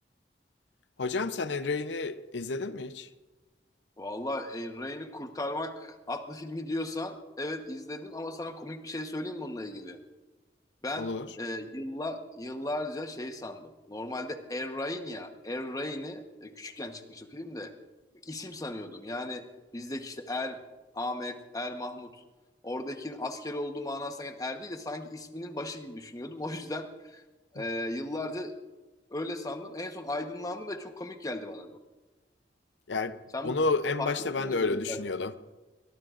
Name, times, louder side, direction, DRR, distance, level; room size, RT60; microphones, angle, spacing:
voice 1, 1.0-3.1 11.0-11.3 32.9-33.2 33.4-35.3, left 3 dB, 85° left, 0.7 m, -30 dB
voice 2, 4.0-10.0 10.8-17.7 18.2-19.4 19.7-20.6 20.9-22.2 22.6-27.2 27.5-28.5 29.1-31.8 33.3-33.5 34.0-35.0, left 1 dB, 20° left, 1.1 m, -36 dB
22.5 x 22.0 x 2.5 m
head